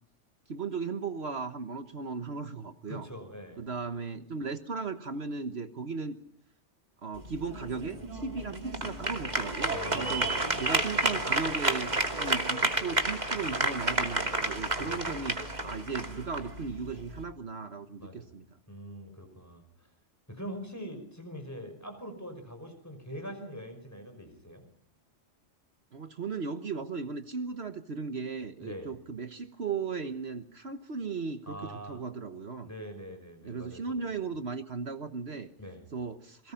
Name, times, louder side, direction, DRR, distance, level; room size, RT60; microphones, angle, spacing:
voice 1, 0.5-3.1 3.6-6.2 7.0-10.3 10.6-18.4 25.9-32.7 33.4-35.5 35.9-36.5, right 4 dB, 60° right, 8 dB, 1.5 m, -36 dB
voice 2, 2.9-3.6 9.7-10.8 14.8-15.3 18.0-18.3 18.7-19.9 20.3-24.7 28.6-28.9 31.5-32.0 32.6-34.0 35.6-35.9, equal, 15° left, 6 dB, 5.6 m, -43 dB
sound 1, 7.1-17.2, right 2 dB, 35° right, 2.8 m, -31 dB
28.5 x 23.0 x 5.8 m, 0.64 s
omnidirectional pair, 1.2 m